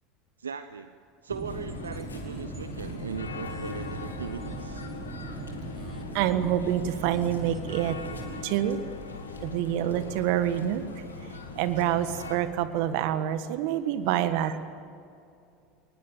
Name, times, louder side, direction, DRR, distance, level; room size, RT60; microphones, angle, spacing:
voice 1, 0.4-0.9 1.2-4.8, right 6 dB, 85° right, 11 dB, 0.7 m, -38 dB
sound 1, 1.3-12.2 12.5-12.6, right 3 dB, 20° right, 1.9 m, -42 dB
sound 2, 1.4-12.4, left 3 dB, 85° left, 2.3 m, -40 dB
voice 2, 6.1-8.0 8.4-8.8 9.4-11.0 11.5-14.7, right 11 dB, 60° right, 11 dB, 1.5 m, -27 dB
22.0 x 20.0 x 8.9 m, 2.5 s
hypercardioid pair, 75°, 0 cm